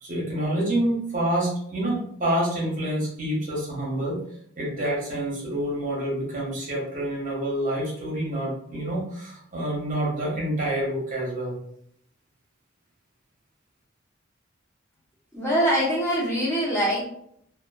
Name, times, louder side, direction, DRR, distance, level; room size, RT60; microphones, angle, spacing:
voice 1, 0.0-4.2 4.6-11.6, right 1 dB, 45° right, -4 dB, 0.9 m, -27 dB
voice 2, 15.3-17.1, equal, 15° left, -8 dB, 0.9 m, -23 dB
2.3 x 2.3 x 2.3 m, 0.69 s
head